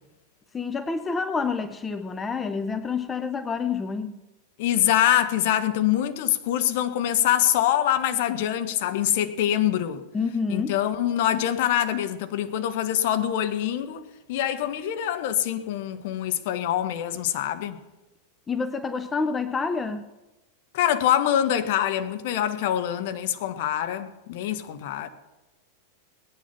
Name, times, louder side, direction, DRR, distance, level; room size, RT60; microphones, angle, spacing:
voice 1, 0.5-4.2 10.1-10.8 18.5-20.1, left 5 dB, 15° left, 0.7 m, -28 dB
voice 2, 4.6-10.0 10.5-14.0 14.3-17.8 20.7-25.1, left 11 dB, 50° left, 1.1 m, -24 dB
18.5 x 9.9 x 5.9 m
figure-of-eight pair, 90°, 0 cm